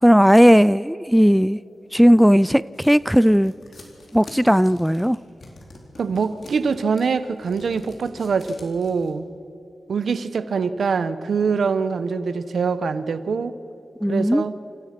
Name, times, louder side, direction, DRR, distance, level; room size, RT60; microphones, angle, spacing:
voice 1, 0.0-1.6 1.9-3.5 4.1-5.2 14.0-14.4, equal, ahead, 0.4 m, -16 dB
sound 1, 1.9-9.1, left 2 dB, 65° left, 4.2 m, -46 dB
voice 2, 6.0-9.3 9.9-13.5 14.1-14.5, right 5 dB, 75° right, 0.9 m, -24 dB
28.5 x 16.0 x 5.9 m
cardioid pair, 80°, 0 cm